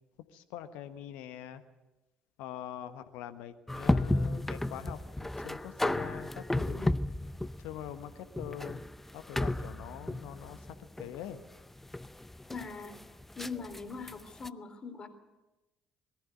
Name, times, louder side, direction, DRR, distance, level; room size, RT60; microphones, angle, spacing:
voice 1, 0.3-1.6 2.4-5.0 5.4-6.9 7.6-8.8 9.1-11.4, left 11 dB, 70° left, 10 dB, 1.3 m, -44 dB
sound 1, 3.7-14.5, left 1 dB, 10° left, 0.6 m, -33 dB
voice 2, 12.5-13.0 13.4-15.1, left 4 dB, 35° left, 7 dB, 3.7 m, -41 dB
22.0 x 14.5 x 9.3 m, 1.0 s
hypercardioid pair, 55°, 2 cm